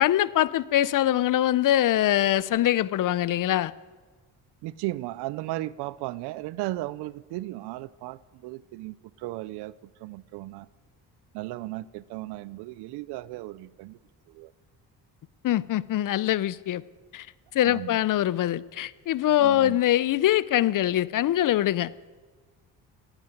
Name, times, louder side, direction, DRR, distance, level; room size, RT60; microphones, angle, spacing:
voice 1, 0.0-3.7 15.4-16.8 17.1-17.3 17.5-21.9, left 13 dB, 55° left, 0.6 m, -23 dB
voice 2, 4.6-10.7 11.3-14.0 14.3-14.5 17.6-18.0 19.4-19.8, right 17 dB, 90° right, 0.6 m, -36 dB
17.0 x 9.1 x 9.2 m
cardioid pair, 75°, 38 cm